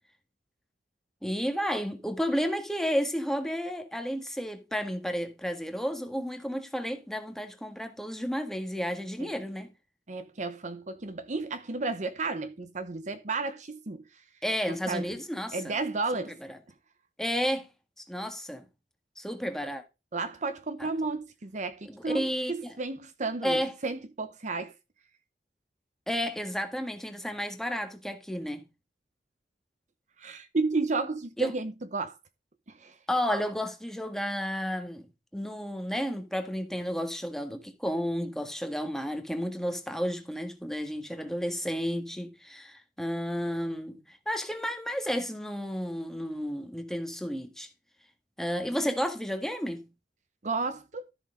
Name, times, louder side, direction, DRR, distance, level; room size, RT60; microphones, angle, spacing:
voice 1, 1.2-9.7 14.4-15.7 16.1-16.2 16.5-16.6 17.2-17.7 18.1-18.6 19.2-19.8 20.8-20.9 21.9-22.7 23.4-23.7 26.1-28.6 31.4-31.5 33.1-35.1 35.3-47.7 48.4-49.9, equal, ahead, 1.6 m, -32 dB
voice 2, 10.1-14.0 14.7-15.1 15.5-16.4 20.1-24.7 30.2-32.2 32.7-33.0 50.4-51.1, right 3 dB, 45° right, 0.8 m, -32 dB
13.0 x 6.3 x 3.8 m
head